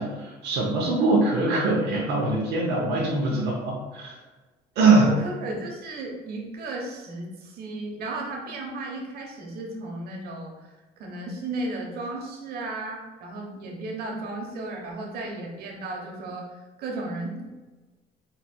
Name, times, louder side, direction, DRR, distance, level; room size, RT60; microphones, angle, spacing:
voice 1, 0.0-4.1 4.8-5.1, right 3 dB, 85° right, -4 dB, 0.8 m, -22 dB
voice 2, 5.0-10.7 11.0-17.5, right 2 dB, 65° right, 0 dB, 1.1 m, -34 dB
4.3 x 4.0 x 2.3 m, 1.2 s
cardioid pair, 110°, 17 cm